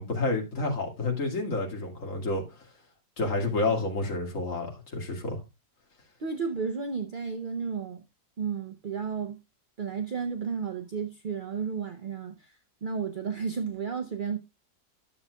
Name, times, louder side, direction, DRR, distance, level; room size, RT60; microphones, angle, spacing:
voice 1, 0.0-2.4 3.2-5.4, left 2 dB, 50° left, 2.4 m, -29 dB
voice 2, 6.2-8.0 8.4-9.4 9.8-14.4, right 6 dB, 50° right, 0.6 m, -33 dB
12.5 x 7.0 x 2.2 m
omnidirectional pair, 1.8 m